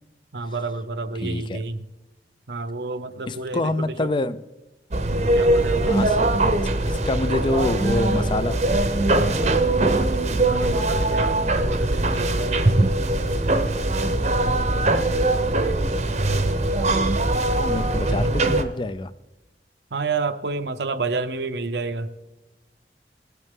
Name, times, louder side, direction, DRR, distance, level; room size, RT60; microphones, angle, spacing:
voice 1, 0.3-1.8 2.5-3.7 4.0-4.1 5.2-6.0 10.4-12.7 19.9-22.1, right 3 dB, 75° right, 9 dB, 0.7 m, -29 dB
voice 2, 1.2-1.6 3.3-4.4 5.8-6.5 6.9-8.6 17.5-19.1, left 2 dB, 25° left, 15 dB, 0.4 m, -26 dB
sound 1, 4.9-18.6, right 2 dB, 40° right, 0.8 m, -21 dB
19.5 x 8.2 x 3.7 m, 1.1 s
head